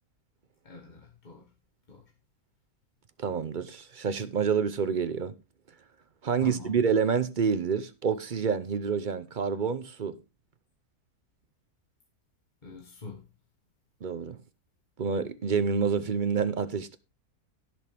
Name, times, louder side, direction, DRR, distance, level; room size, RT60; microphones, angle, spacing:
voice 1, 0.6-1.5 1.9-2.0 6.4-6.8 12.6-13.3, left 4 dB, 30° left, 1.6 m, -43 dB
voice 2, 3.2-5.3 6.2-10.2 14.0-14.4 15.0-17.0, right 6 dB, 45° right, 0.7 m, -28 dB
17.0 x 6.3 x 3.5 m
omnidirectional pair, 1.6 m